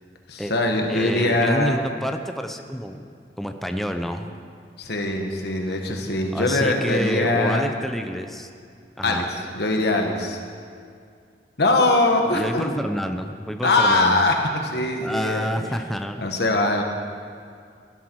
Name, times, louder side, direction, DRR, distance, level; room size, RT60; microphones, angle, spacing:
voice 1, 0.3-1.8 4.8-7.6 9.0-10.4 11.6-12.7 13.6-15.7 16.2-16.8, left 2 dB, 65° left, 3 dB, 1.5 m, -22 dB
voice 2, 0.9-3.0 3.4-4.3 6.3-8.5 9.0-9.2 12.2-14.2 15.0-16.2, equal, ahead, 6 dB, 0.6 m, -28 dB
17.0 x 11.5 x 4.7 m, 2.3 s
head